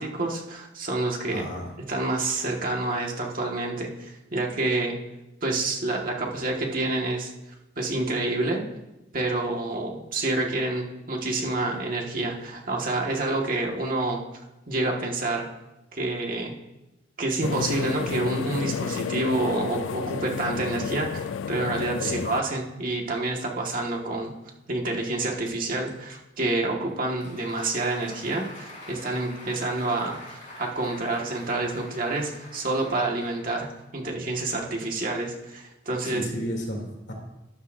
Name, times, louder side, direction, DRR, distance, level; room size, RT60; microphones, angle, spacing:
voice 1, 0.0-1.5 1.9-5.0 5.4-7.3 7.8-8.6 9.1-14.2 14.7-15.5 15.9-16.5 17.2-24.3 24.7-36.2, right 2 dB, 50° right, 0 dB, 1.8 m, -28 dB
voice 2, 1.3-1.7 22.0-22.2 36.0-37.1, equal, 65° left, 0 dB, 3.0 m, -33 dB
sound 1, 17.4-22.4, left 7 dB, 85° left, 0.3 m, -31 dB
Applause, 26.9-34.0, left 1 dB, 40° left, 4.2 m, -46 dB
12.5 x 12.5 x 2.7 m, 0.96 s
head